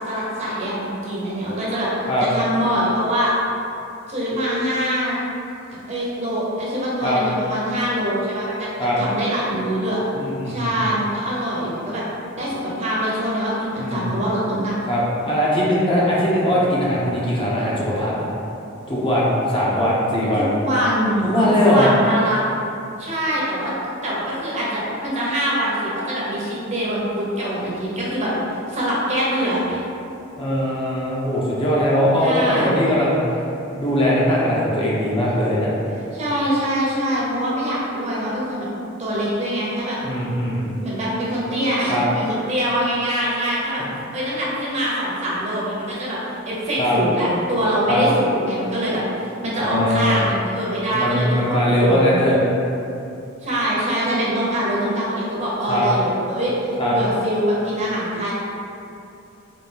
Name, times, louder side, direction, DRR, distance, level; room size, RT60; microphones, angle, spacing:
voice 1, 0.1-1.9 2.2-3.3 4.1-5.2 5.9-8.7 9.0-10.0 10.5-12.0 12.3-14.7 20.4-22.4 23.0-23.7 24.0-29.8 32.2-32.8 36.1-38.7 39.0-40.0 40.8-43.8 44.1-46.2 46.5-52.2 53.4-56.5 56.9-58.3, equal, 35° right, -6 dB, 0.8 m, -24 dB
voice 2, 10.1-10.8 13.8-14.1 14.9-18.3 18.9-20.5 21.2-21.9 30.3-33.2 33.8-35.7 40.0-40.6 41.9-42.0 46.8-46.9 47.9-48.1 49.6-50.2 50.9-52.4 55.6-55.9 56.8-57.0, equal, 25° left, -6 dB, 0.7 m, -20 dB
4.2 x 2.5 x 3.4 m, 2.7 s
head